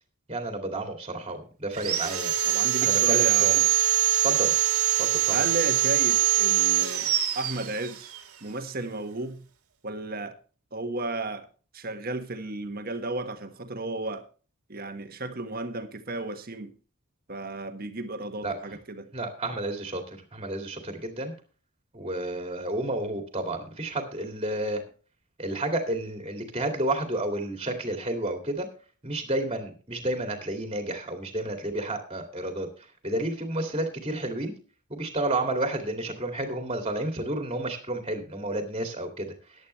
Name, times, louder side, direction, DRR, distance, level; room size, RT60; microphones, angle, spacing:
voice 1, 0.3-2.3 2.8-3.6 4.2-4.5 5.0-5.4 18.4-18.8 19.1-21.3 21.9-24.8 25.4-28.7 29.0-32.7 33.0-34.5 34.9-39.3, right 1 dB, 25° right, 2.2 m, -31 dB
Sawing, 1.7-8.2, right 13 dB, 85° right, 2.1 m, -23 dB
voice 2, 2.5-3.7 5.3-8.1 8.4-9.5 9.8-10.4 10.7-11.5 11.7-14.2 14.7-16.7 17.3-19.1, right 2 dB, 40° right, 1.4 m, -34 dB
14.5 x 11.0 x 3.2 m
head